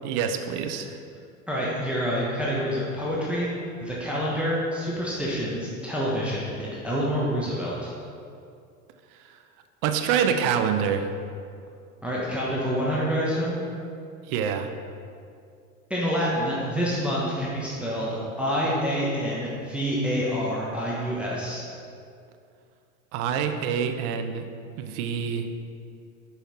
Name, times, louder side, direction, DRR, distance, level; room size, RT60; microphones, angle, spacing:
voice 1, 0.0-1.0 9.2-9.4 9.8-11.1 14.2-14.7 23.1-24.5 24.8-25.5, right 7 dB, 55° right, 7 dB, 0.7 m, -26 dB
voice 2, 1.5-3.5 3.8-7.9 12.0-13.6 15.9-21.6, equal, 5° right, -6 dB, 1.1 m, -27 dB
5.7 x 5.6 x 4.2 m, 2.4 s
hypercardioid pair, 95°, 43 cm